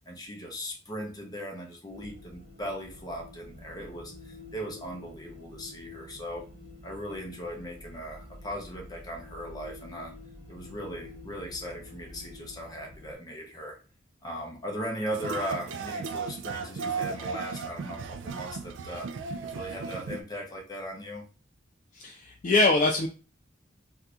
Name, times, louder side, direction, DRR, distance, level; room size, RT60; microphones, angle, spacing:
voice 1, 0.1-6.5 6.8-10.1 10.5-13.8 14.2-19.1 19.4-21.2, equal, 20° left, 0 dB, 0.8 m, -38 dB
sound 1, 1.9-13.1, left 2 dB, 90° right, 1.1 m, -48 dB
sound 2, 15.1-20.2, right 5 dB, 70° right, 0.3 m, -35 dB
voice 2, 21.9-23.1, left 2 dB, 40° left, 1 dB, 0.3 m, -23 dB
2.8 x 2.4 x 3.4 m, 0.35 s
head